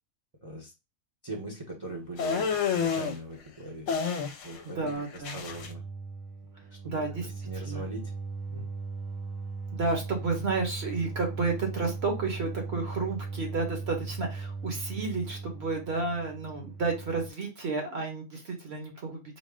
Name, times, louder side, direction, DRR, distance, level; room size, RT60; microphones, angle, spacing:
voice 1, 1.2-3.9 4.4-5.8 6.8-8.1 8.5-8.6, right 2 dB, 25° right, -2 dB, 0.8 m, -41 dB
sound 1, 2.2-3.2 3.9-4.6 4.9-5.7, left 6 dB, 70° left, 0.9 m, -29 dB
voice 2, 4.7-5.4 6.8-7.3 7.6-7.8 9.7-19.2, right 3 dB, 50° right, 2 dB, 1.3 m, -31 dB
sound 2, 5.5-17.3, right 4 dB, 75° right, 1.1 m, -38 dB
4.2 x 2.1 x 3.6 m, 0.26 s
omnidirectional pair, 1.4 m